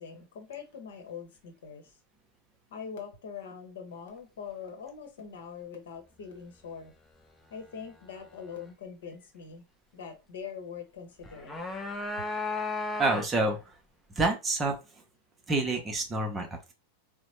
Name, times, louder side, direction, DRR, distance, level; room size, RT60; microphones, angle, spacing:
voice 1, 0.0-1.9 2.7-6.9 7.5-9.6 9.9-11.6 12.2-12.3, left 6 dB, 60° left, 3 dB, 1.0 m, -43 dB
sound 1, 11.2-13.6, left 3 dB, 10° left, 0.6 m, -34 dB
voice 2, 13.0-13.6 14.2-14.7 15.5-16.7, right 2 dB, 20° right, 3 dB, 0.8 m, -27 dB
3.9 x 2.1 x 3.1 m, 0.27 s
figure-of-eight pair, 90°, 0 cm